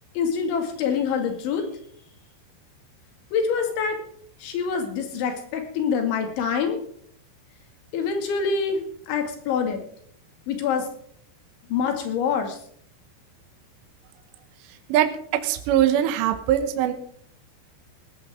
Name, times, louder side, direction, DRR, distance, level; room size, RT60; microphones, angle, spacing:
voice 1, 0.2-1.6 3.3-4.0 4.4-6.8 7.9-8.8 9.1-9.8 10.5-10.9 11.7-12.6, left 6 dB, 70° left, 4 dB, 4.6 m, -25 dB
voice 2, 15.4-16.9, right 11 dB, 75° right, 7 dB, 3.0 m, -21 dB
18.0 x 15.0 x 3.8 m, 0.62 s
omnidirectional pair, 5.6 m